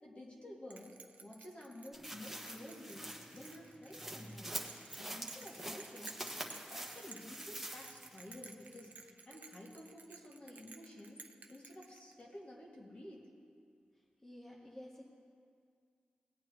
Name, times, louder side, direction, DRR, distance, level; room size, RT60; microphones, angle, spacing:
voice 1, 0.0-4.6 5.0-11.2 11.5-13.3, left 1 dB, 40° left, -3 dB, 2.1 m, -52 dB
Bell, 0.7-12.4, right 4 dB, 60° right, 0.7 m, -55 dB
sound 1, 1.9-8.3 8.6-8.7, right 1 dB, 5° right, 1.3 m, -46 dB
voice 2, 14.2-15.1, left 1 dB, 15° left, -3 dB, 1.1 m, -51 dB
18.5 x 8.6 x 3.1 m, 2.2 s
cardioid pair, 65°, 3 cm